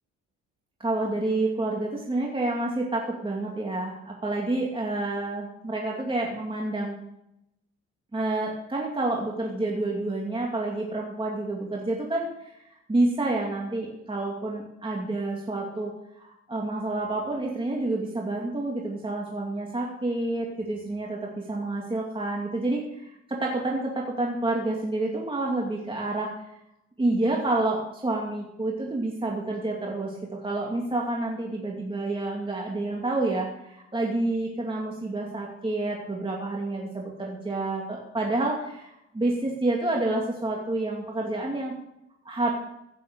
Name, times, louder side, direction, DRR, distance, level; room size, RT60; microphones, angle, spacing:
voice 1, 0.8-7.0 8.1-26.3 27.0-41.7 42.2-42.5, right 2 dB, 15° right, -2 dB, 2.5 m, -29 dB
15.5 x 7.6 x 6.8 m, 0.83 s
cardioid pair, 90°, 30 cm